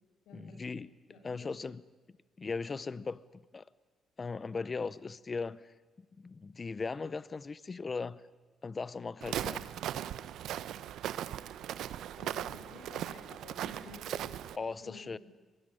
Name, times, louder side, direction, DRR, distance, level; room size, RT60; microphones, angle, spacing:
voice 1, 0.3-0.9 1.2-1.8 2.4-3.6 4.2-5.7 6.2-8.2 8.6-9.6 14.5-15.2, left 4 dB, 30° left, 18 dB, 0.7 m, -38 dB
voice 2, 1.1-1.5 12.2-15.2, left 3 dB, 85° left, 4 dB, 6.6 m, -52 dB
Walk footsteps, 9.2-14.6, right 11 dB, 80° right, 0.8 m, -38 dB
23.5 x 19.5 x 10.0 m, 1.3 s
cardioid pair, 90°, 0 cm